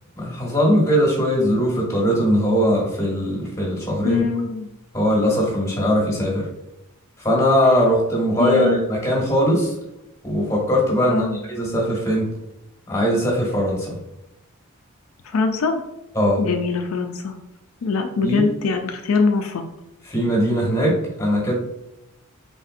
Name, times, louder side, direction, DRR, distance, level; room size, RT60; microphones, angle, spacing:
voice 1, 0.2-4.2 4.9-6.5 7.2-9.7 10.2-12.3 12.9-14.0 16.1-16.4 18.2-18.4 20.1-21.6, equal, 15° left, -3 dB, 1.3 m, -20 dB
voice 2, 4.0-4.7 8.4-8.8 11.1-11.4 15.2-15.8 16.4-17.4 17.8-19.6, left 4 dB, 75° left, 4 dB, 0.4 m, -22 dB
4.1 x 3.4 x 2.5 m, 0.88 s
head